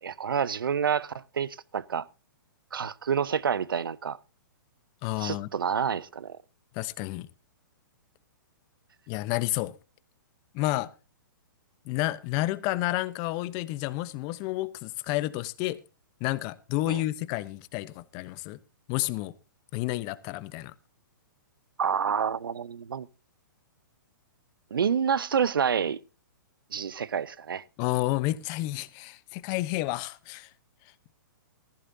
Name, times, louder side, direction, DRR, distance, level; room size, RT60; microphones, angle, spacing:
voice 1, 0.0-2.1 2.7-4.2 5.2-6.4 16.9-17.0 21.8-23.1 24.7-26.0 26.7-27.6, right 7 dB, 85° right, 0.7 m, -28 dB
voice 2, 5.0-5.5 6.7-7.3 9.1-9.7 10.5-10.9 11.8-15.8 16.2-18.6 18.9-19.3 19.7-20.7 27.8-30.5, left 17 dB, 35° left, 0.9 m, -30 dB
16.0 x 14.5 x 2.7 m
hypercardioid pair, 130°, 11 cm